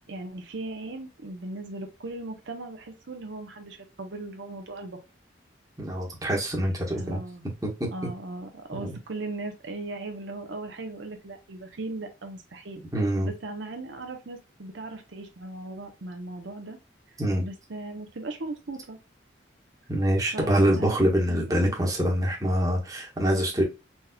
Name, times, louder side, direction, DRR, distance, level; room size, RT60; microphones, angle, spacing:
voice 1, 0.0-5.0 6.9-7.4 7.9-12.8 13.2-16.8 17.4-19.0 20.3-21.7, right 2 dB, 75° right, 0.8 m, -38 dB
voice 2, 5.8-7.2 7.6-7.9 8.7-8.9 12.9-13.3 17.2-17.4 19.9-23.6, equal, 20° right, 1.2 m, -25 dB
4.2 x 3.4 x 2.2 m
head